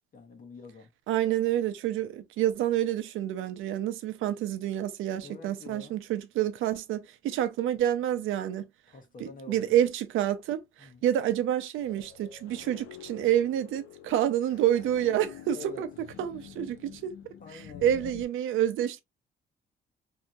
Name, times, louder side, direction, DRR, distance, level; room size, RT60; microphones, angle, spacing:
voice 1, 0.1-0.9 5.2-6.0 8.9-9.8 10.8-11.1 15.5-15.8 17.4-18.2, left 4 dB, 45° left, 1.0 m, -46 dB
voice 2, 1.1-8.6 9.2-17.3 17.8-19.0, right 11 dB, 85° right, 0.6 m, -28 dB
sound 1, 11.8-18.3, left 10 dB, 80° left, 0.5 m, -48 dB
2.8 x 2.6 x 2.3 m
cardioid pair, 90°, 20 cm